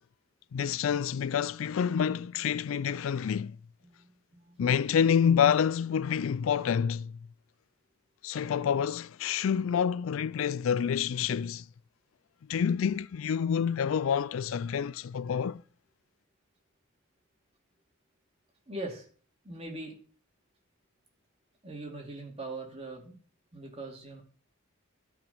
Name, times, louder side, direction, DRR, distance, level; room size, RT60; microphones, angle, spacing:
voice 1, 0.5-3.6 4.6-7.2 8.2-11.7 12.5-15.6, left 7 dB, 75° left, 0.4 m, -28 dB
voice 2, 3.8-4.6 18.7-19.1 19.4-19.9 21.6-23.2 23.5-24.2, right 2 dB, 30° right, 2.6 m, -41 dB
13.5 x 5.0 x 5.5 m
head